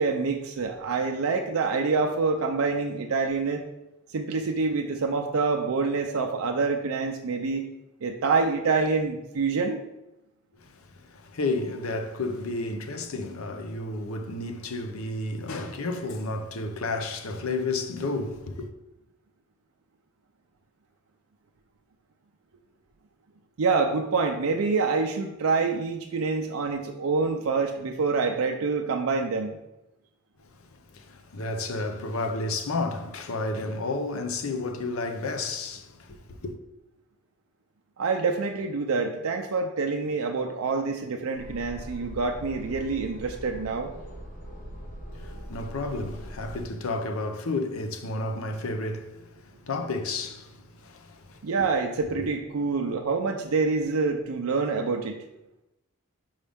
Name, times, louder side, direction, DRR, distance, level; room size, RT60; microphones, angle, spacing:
voice 1, 0.0-3.6 4.1-7.6 8.0-9.8 23.6-29.6 38.0-43.9 51.4-55.2, right 4 dB, 90° right, 0.5 m, -26 dB
voice 2, 10.6-18.7 30.6-36.5 45.1-51.4 52.2-52.3, left 2 dB, 80° left, 0.7 m, -32 dB
sound 1, 41.3-46.6, equal, 40° left, 1.1 m, -41 dB
5.5 x 5.0 x 3.5 m
head